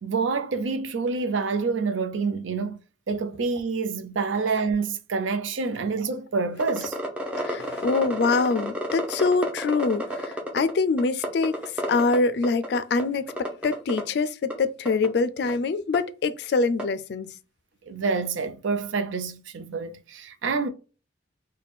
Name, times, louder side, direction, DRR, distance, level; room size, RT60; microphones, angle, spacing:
voice 1, 0.0-2.8 3.1-6.9 17.9-20.7, right 4 dB, 90° right, 0.5 m, -27 dB
sound 1, 6.6-10.7 11.0-12.2 12.4-13.0 13.3-14.0 14.5-14.6 14.8-15.1 15.5-15.6 15.9-16.0 16.8-16.9, equal, 5° right, 0.6 m, -30 dB
voice 2, 7.4-11.5 11.9-17.3, left 4 dB, 60° left, 0.3 m, -24 dB
3.4 x 2.2 x 4.0 m
head